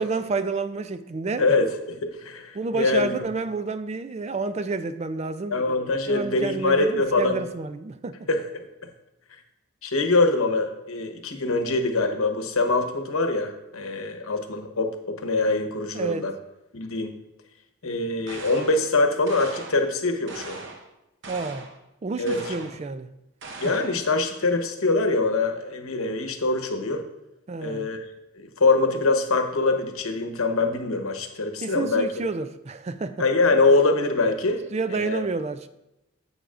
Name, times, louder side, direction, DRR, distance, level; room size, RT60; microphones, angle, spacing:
voice 1, 0.0-1.5 2.5-5.6 6.1-8.3 15.9-16.3 21.3-21.7 22.0-23.1 27.5-27.9 31.6-33.2 34.7-35.7, right 3 dB, 30° right, 0.3 m, -29 dB
voice 2, 1.4-3.2 5.5-7.4 8.3-8.4 9.8-16.3 16.7-17.1 17.8-20.6 22.2-22.4 23.6-27.0 27.6-28.0 28.4-32.1 33.2-34.6 34.9-35.2, left 3 dB, 85° left, 1.1 m, -24 dB
sound 1, 18.3-18.9 19.3-19.9 20.3-20.9 21.2-21.8 22.3-22.8 23.4-24.1, right 3 dB, 60° right, 0.8 m, -40 dB
9.8 x 8.1 x 2.5 m
head